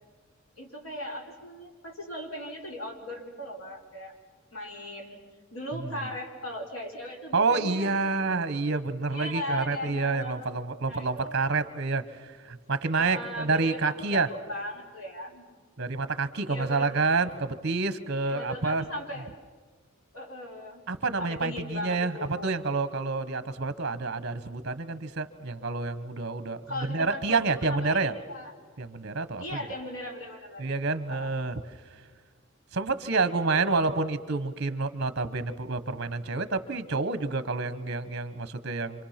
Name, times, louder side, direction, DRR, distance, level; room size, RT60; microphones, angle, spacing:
voice 1, 0.6-4.1 4.5-5.2 5.5-8.0 9.1-10.5 10.8-11.3 12.9-15.5 16.5-17.1 18.2-19.3 20.1-20.8 21.2-22.6 26.7-28.5 29.4-30.7 31.1-31.3 33.5-34.0, left 1 dB, 85° left, 1 dB, 4.1 m, -38 dB
voice 2, 7.3-14.3 15.8-18.8 20.9-28.1 28.8-29.4 30.6-31.6 32.7-39.0, right 3 dB, 55° right, 12 dB, 1.0 m, -28 dB
27.0 x 27.0 x 5.9 m, 1.5 s
head